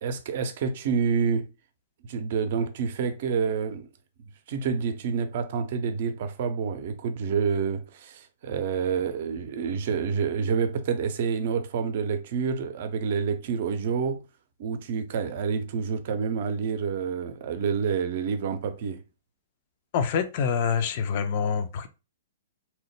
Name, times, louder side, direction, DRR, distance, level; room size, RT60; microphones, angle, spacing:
voice 1, 0.0-1.5 2.0-3.9 4.5-14.2 14.6-19.0, right 6 dB, 50° right, 0.5 m, -28 dB
voice 2, 19.9-21.9, left 6 dB, 45° left, 0.5 m, -26 dB
2.9 x 2.0 x 3.2 m
figure-of-eight pair, 115°, 0 cm